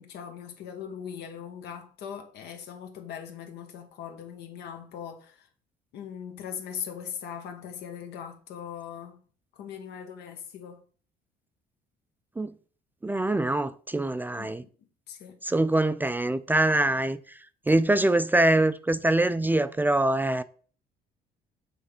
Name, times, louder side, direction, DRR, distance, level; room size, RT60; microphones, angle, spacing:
voice 1, 0.0-5.5 5.9-9.2 9.5-10.8 13.1-13.3 14.4-14.5 15.1-15.4, left 8 dB, 80° left, 1.1 m, -40 dB
voice 2, 13.0-14.6 15.4-17.2 17.7-20.4, right 2 dB, 10° right, 0.3 m, -24 dB
6.6 x 3.3 x 5.2 m
cardioid pair, 110°, 17 cm